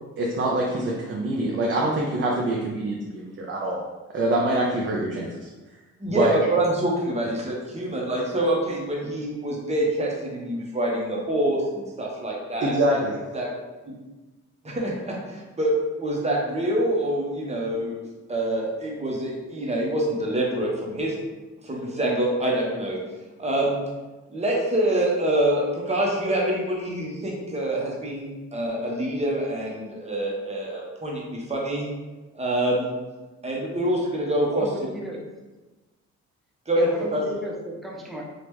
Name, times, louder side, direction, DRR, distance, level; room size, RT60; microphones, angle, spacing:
voice 1, 0.2-3.8 4.1-5.5 6.1-6.3 12.6-13.2, right 1 dB, 40° right, -2 dB, 0.5 m, -25 dB
voice 2, 6.0-13.0 13.3-13.5 13.9-14.0 14.6-18.0 18.3-21.1 21.6-23.0 23.4-23.8 24.3-31.9 32.3-32.9 33.4-34.7 36.7-37.2, right 1 dB, 20° right, -3 dB, 0.9 m, -26 dB
voice 3, 34.5-35.3 36.8-38.2, right 1 dB, ahead, -2 dB, 0.6 m, -35 dB
2.9 x 2.4 x 3.4 m, 1.2 s
cardioid pair, 90°, 30 cm